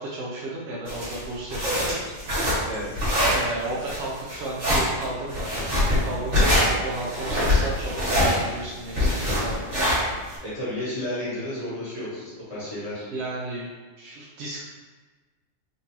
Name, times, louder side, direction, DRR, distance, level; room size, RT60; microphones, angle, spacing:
voice 1, 0.0-2.0 3.3-9.8 13.1-13.7 14.0-14.6, right 2 dB, 65° right, -4 dB, 0.8 m, -33 dB
sound 1, 0.9-10.3, left 1 dB, 85° right, 1.8 m, -23 dB
voice 2, 10.4-13.1, left 1 dB, 30° left, -10 dB, 1.4 m, -32 dB
3.8 x 2.6 x 2.9 m, 1.3 s
omnidirectional pair, 1.3 m